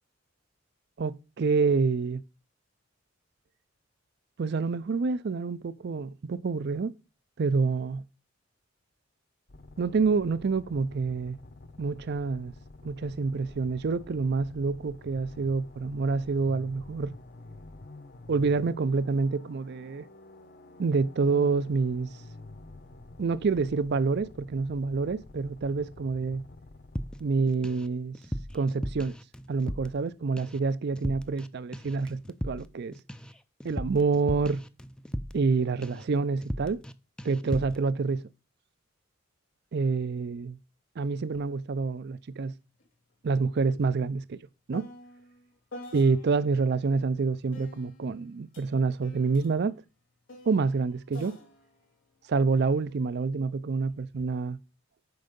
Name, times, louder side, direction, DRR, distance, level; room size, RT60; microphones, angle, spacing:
voice 1, 1.0-2.2 4.4-6.9 7.4-8.0 9.8-11.4 11.8-12.5 12.8-17.1 18.3-20.1 20.8-22.1 23.2-26.4 27.2-28.2 28.5-29.1 29.5-33.0 33.6-34.6 35.3-36.8 37.2-38.3 39.7-40.6 41.0-42.5 43.2-44.4 44.7-44.9 45.9-49.8 50.5-51.4 52.3-54.6, right 4 dB, 55° right, 0.4 m, -27 dB
sound 1, 9.5-27.5, left 2 dB, 45° left, 0.8 m, -49 dB
sound 2, 27.0-27.9 28.1-30.1 30.4-30.7 31.0-31.5 31.7-35.5 35.8-36.1 36.4-36.9 37.2-37.8, equal, 5° left, 0.4 m, -37 dB
sound 3, 41.3-41.5 41.8-46.6 47.5-53.1 53.9-54.3, left 1 dB, 70° left, 2.9 m, -50 dB
7.9 x 5.4 x 5.2 m
head